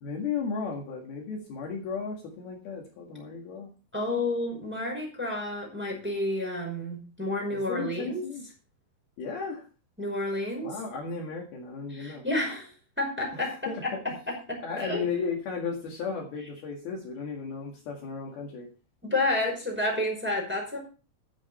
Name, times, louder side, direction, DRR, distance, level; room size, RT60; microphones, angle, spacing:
voice 1, 0.0-3.7 7.5-8.4 9.2-9.7 10.6-12.2 13.3-14.2 14.6-18.7, left 5 dB, 60° left, 0 dB, 3.5 m, -35 dB
voice 2, 3.9-8.2 10.0-10.7 11.9-13.9 14.3-15.0 19.0-20.8, left 1 dB, ahead, -1 dB, 4.9 m, -30 dB
12.0 x 9.9 x 4.3 m, 0.35 s
omnidirectional pair, 5.2 m